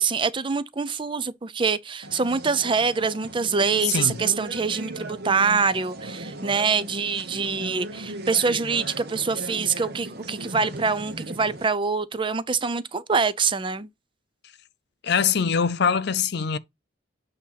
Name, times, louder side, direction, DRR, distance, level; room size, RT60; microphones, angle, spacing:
voice 1, 0.0-13.9, right 5 dB, 25° right, 0.5 m, -25 dB
sound 1, 2.0-11.7, right 1 dB, 55° right, 1.0 m, -37 dB
voice 2, 3.8-4.2 15.0-16.6, left 6 dB, 60° left, 0.5 m, -23 dB
8.4 x 2.8 x 5.7 m
head